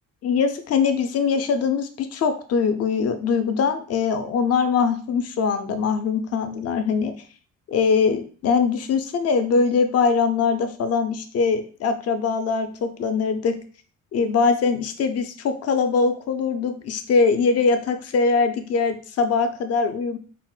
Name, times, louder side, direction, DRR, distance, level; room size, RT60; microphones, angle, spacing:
voice 1, 0.2-7.1 7.7-13.6 14.1-20.2, left 5 dB, 55° left, 8 dB, 0.5 m, -22 dB
4.0 x 2.1 x 2.2 m, 0.42 s
cardioid pair, 90°, 30 cm